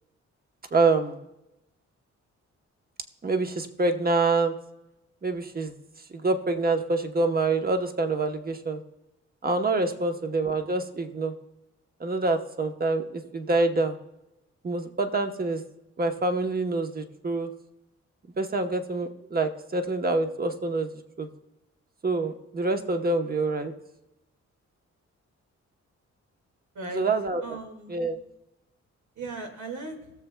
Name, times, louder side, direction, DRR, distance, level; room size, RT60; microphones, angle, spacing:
voice 1, 0.7-1.2 3.2-4.5 5.2-5.7 6.1-8.8 9.4-11.3 12.0-14.0 14.6-15.6 16.0-17.5 18.4-20.9 21.2-21.3 22.0-23.7 26.9-27.4 27.9-28.2, right 3 dB, 30° right, 6 dB, 1.0 m, -26 dB
voice 2, 26.7-27.1 27.4-27.9 29.2-30.1, right 2 dB, 80° right, 3 dB, 2.2 m, -38 dB
19.0 x 7.1 x 2.3 m, 0.92 s
cardioid pair, 100°, 29 cm